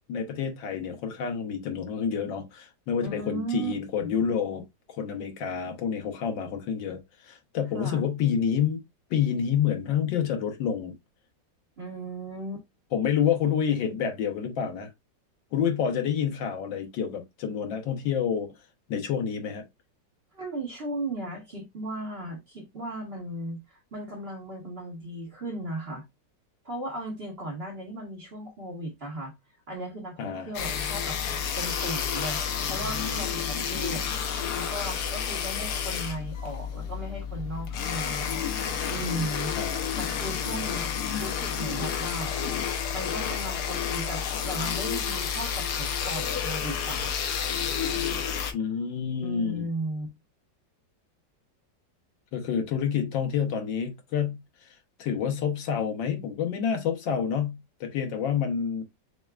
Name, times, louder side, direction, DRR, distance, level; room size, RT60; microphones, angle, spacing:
voice 1, 0.1-8.8 9.1-10.9 12.9-14.9 15.5-18.5 18.9-19.7 30.2-30.5 39.6-39.9 48.5-49.6 52.3-54.4 54.6-58.8, left 7 dB, 85° left, 1.7 m, -28 dB
voice 2, 3.0-3.7 4.0-4.1 7.7-8.1 11.8-12.7 20.3-26.0 26.6-29.3 29.7-31.2 31.6-32.4 32.7-34.1 34.6-38.4 38.9-40.9 41.2-42.3 42.9-47.2 49.2-50.1, right 1 dB, 35° right, 1.3 m, -36 dB
sound 1, 30.5-48.5, left 7 dB, 65° left, 1.2 m, -30 dB
6.7 x 2.3 x 2.3 m
omnidirectional pair, 2.0 m